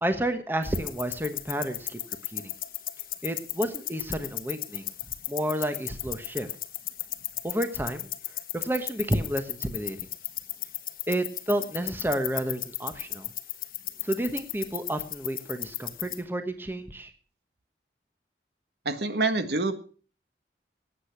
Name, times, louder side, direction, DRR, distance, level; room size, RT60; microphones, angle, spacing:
voice 1, 0.0-2.5 3.2-4.9 5.3-6.5 7.4-8.1 8.5-10.0 11.1-13.3 14.0-17.1, right 1 dB, 10° right, 8 dB, 1.1 m, -30 dB
sound 1, 0.6-16.2, left 14 dB, 50° left, 1.1 m, -36 dB
voice 2, 18.9-19.7, right 3 dB, 70° right, 9 dB, 1.6 m, -26 dB
18.5 x 8.4 x 5.9 m, 0.40 s
head